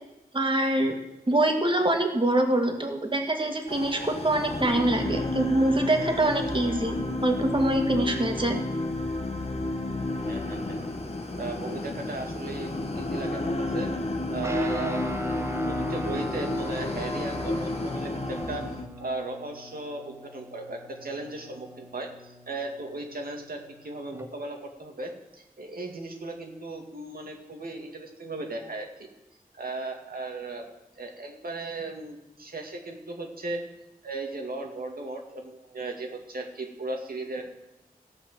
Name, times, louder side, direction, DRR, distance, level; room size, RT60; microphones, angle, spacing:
voice 1, 0.3-1.0 1.3-8.6, right 1 dB, 35° right, 3 dB, 2.1 m, -24 dB
sound 1, 3.7-18.9, left 2 dB, 40° left, 1.5 m, -31 dB
voice 2, 10.3-10.8 11.4-13.9 14.3-15.0 15.4-18.7 19.0-22.1 22.5-29.1 29.6-30.7 31.0-33.6 34.0-37.5, right 2 dB, 75° right, 2 dB, 2.1 m, -36 dB
Guitar, 14.4-24.3, equal, 15° right, 1.1 m, -41 dB
16.0 x 5.8 x 7.4 m, 0.93 s
wide cardioid pair, 70°, 16 cm